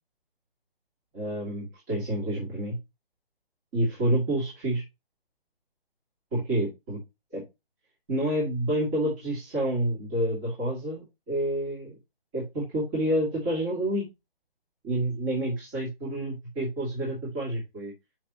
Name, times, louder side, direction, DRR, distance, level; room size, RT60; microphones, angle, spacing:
voice 1, 1.1-2.8 3.7-4.8 6.3-7.0 7.3-7.4 8.1-11.9 12.3-14.1 14.8-17.9, right 1 dB, 20° right, -7 dB, 2.4 m, -28 dB
6.6 x 6.0 x 2.9 m, 0.23 s
figure-of-eight pair, 145°, 31 cm